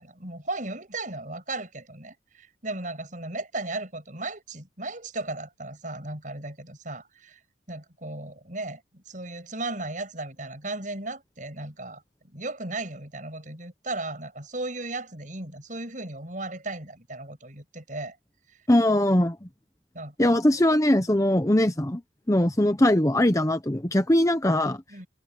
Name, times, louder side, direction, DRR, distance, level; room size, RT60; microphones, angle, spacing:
voice 1, 0.0-7.4 7.7-12.0 12.3-18.2 18.5-18.6 19.9-20.6 22.6-22.7 24.9-25.1, right 2 dB, 45° right, 7.6 m, -36 dB
voice 2, 18.7-19.4 20.2-22.0 22.3-24.8, left 1 dB, 15° left, 1.0 m, -21 dB
head